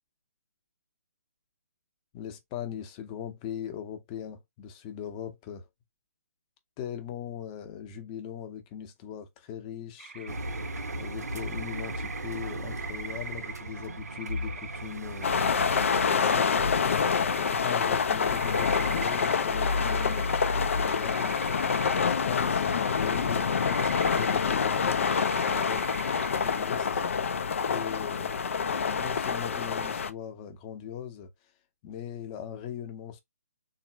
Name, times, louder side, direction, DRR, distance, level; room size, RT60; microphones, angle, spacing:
voice 1, 2.1-5.7 6.8-10.6 11.0-15.8 16.1-21.4 22.0-26.0 26.4-27.0 27.6-31.3 31.8-33.2, left 9 dB, 25° left, 0.8 m, -40 dB
sound 1, 10.0-26.9, right 5 dB, 50° right, 0.5 m, -43 dB
Engine, 10.3-16.1, right 1 dB, 75° right, 0.8 m, -36 dB
sound 2, 15.2-30.1, left 6 dB, 50° left, 0.5 m, -27 dB
3.8 x 2.6 x 2.9 m
figure-of-eight pair, 135°, 9 cm